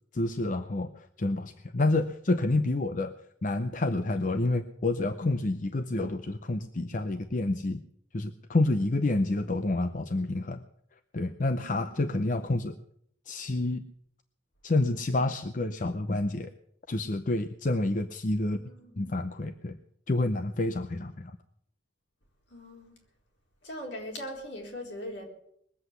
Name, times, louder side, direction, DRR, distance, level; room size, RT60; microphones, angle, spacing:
voice 1, 0.1-3.1 3.4-7.8 8.1-10.6 11.1-12.8 13.3-13.8 14.6-16.5 16.9-18.6 19.0-19.8 20.1-21.4, left 2 dB, 40° left, 9 dB, 0.6 m, -28 dB
voice 2, 18.5-19.0 22.5-22.9 23.6-25.3, equal, 70° left, 0 dB, 4.2 m, -40 dB
21.0 x 8.0 x 8.0 m, 0.71 s
head